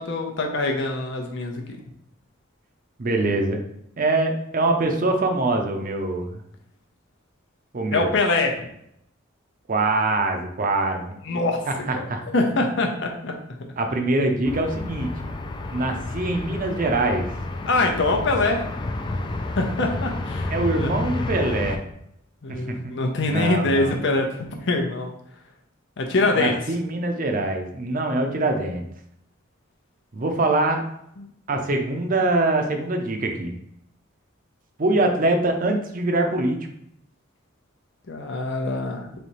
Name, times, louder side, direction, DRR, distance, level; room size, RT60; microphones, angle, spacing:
voice 1, 0.0-1.6 7.9-8.7 11.2-11.6 11.9-13.3 17.7-18.6 19.6-20.9 22.4-24.3 24.6-25.1 26.0-26.5 31.2-31.3 38.1-39.1, left 2 dB, 65° left, 3 dB, 0.7 m, -24 dB
voice 2, 3.0-3.6 4.0-6.4 7.7-8.1 9.7-11.1 11.7-12.2 13.8-15.3 15.7-17.2 20.5-21.8 22.5-22.8 23.2-23.9 26.4-28.9 30.1-30.8 31.5-33.5 34.8-36.6, right 2 dB, 45° right, 4 dB, 0.6 m, -23 dB
sound 1, 14.4-21.8, left 2 dB, 25° left, 0.3 m, -30 dB
3.3 x 2.8 x 4.1 m, 0.74 s
head